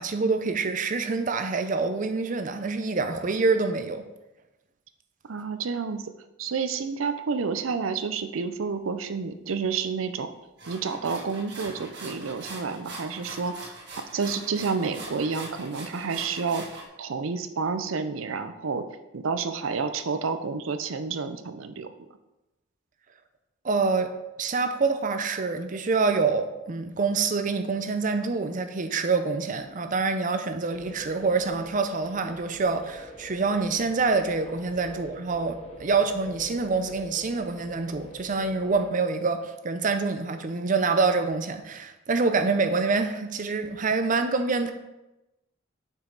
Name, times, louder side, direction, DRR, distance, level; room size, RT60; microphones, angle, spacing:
voice 1, 0.0-4.0 23.6-24.1 24.4-44.7, right 4 dB, 40° right, 8 dB, 0.6 m, -26 dB
voice 2, 5.3-6.1 6.4-10.3 10.7-13.7 14.1-18.8 19.1-21.9, right 5 dB, 85° right, 10 dB, 0.6 m, -30 dB
sound 1, 10.6-16.8, right 2 dB, 55° right, 1.6 m, -42 dB
sound 2, 30.7-38.9, equal, 30° left, 1.0 m, -45 dB
7.1 x 5.5 x 3.9 m, 0.99 s
head